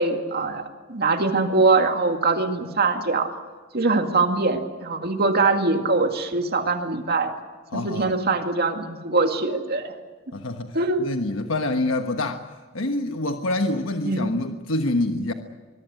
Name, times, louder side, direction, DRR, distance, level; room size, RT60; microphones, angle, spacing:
voice 1, 0.0-3.3 3.7-7.3 7.7-9.9 10.7-11.0 14.0-14.3, right 3 dB, 50° right, 5 dB, 2.1 m, -22 dB
voice 2, 7.7-8.2 10.3-15.3, left 2 dB, 80° left, 5 dB, 1.3 m, -26 dB
24.0 x 22.0 x 7.8 m, 1.4 s
head